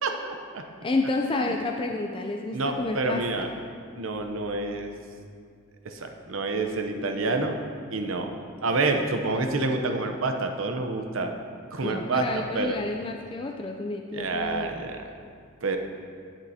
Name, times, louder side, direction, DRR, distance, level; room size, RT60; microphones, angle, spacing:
voice 1, 0.0-0.6 1.4-1.5 2.5-3.5 3.9-4.9 5.8-7.6 7.9-8.3 8.6-11.3 11.7-12.8 14.1-15.1 15.6-15.8, right 3 dB, 80° right, 5 dB, 0.7 m, -28 dB
voice 2, 0.8-3.2 11.8-14.7, left 2 dB, 25° left, 2 dB, 0.3 m, -30 dB
11.0 x 7.3 x 2.8 m, 2.2 s
head